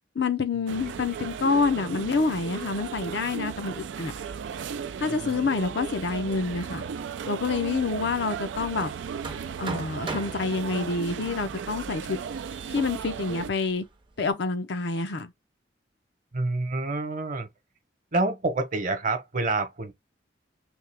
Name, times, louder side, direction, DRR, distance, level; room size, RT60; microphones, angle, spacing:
voice 1, 0.2-4.1 5.0-6.8 7.3-8.9 9.6-12.2 12.7-13.8 14.2-15.3, left 4 dB, 70° left, 0.6 m, -27 dB
sound 1, 0.7-13.5, right 7 dB, 85° right, 0.4 m, -36 dB
Hammer, 7.4-14.3, right 3 dB, 30° right, 0.6 m, -42 dB
voice 2, 16.3-17.5 18.1-19.9, right 2 dB, 45° right, 0.9 m, -28 dB
3.5 x 2.8 x 3.3 m
head